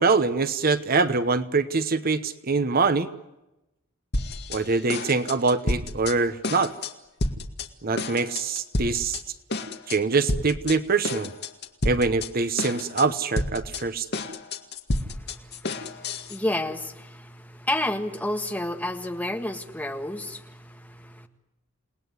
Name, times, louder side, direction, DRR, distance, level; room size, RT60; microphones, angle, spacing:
voice 1, 0.0-3.1 4.5-6.7 7.8-9.2 9.9-11.3 11.8-14.1, right 4 dB, 45° right, 12 dB, 1.0 m, -24 dB
sound 1, 4.1-4.6 4.9-6.1 6.4-6.9 7.2-7.7 8.0-9.2 9.5-10.0 10.3-10.8 11.0-12.3 12.6-13.1 13.4-16.4, left 2 dB, 50° left, 2.0 m, -29 dB
voice 2, 14.9-21.3, left 1 dB, 5° left, 5 dB, 1.7 m, -31 dB
28.5 x 19.5 x 9.6 m, 0.95 s
head